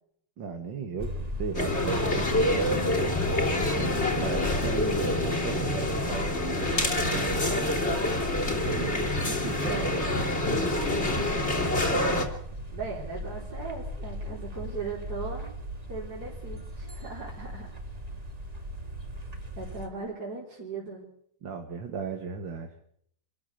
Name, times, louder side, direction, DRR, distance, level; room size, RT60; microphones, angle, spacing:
voice 1, 0.4-3.2 4.2-7.7 8.5-10.1 21.4-22.8, right 6 dB, 65° right, 5 dB, 2.4 m, -36 dB
sound 1, 1.0-19.9, equal, 20° right, 2.2 m, -37 dB
sound 2, 1.5-12.2, left 2 dB, 30° left, 3.6 m, -27 dB
voice 2, 12.7-15.5 15.9-17.7 19.6-21.1, right 4 dB, 50° right, -4 dB, 4.4 m, -38 dB
26.5 x 13.5 x 8.3 m, 0.69 s
omnidirectional pair, 2.2 m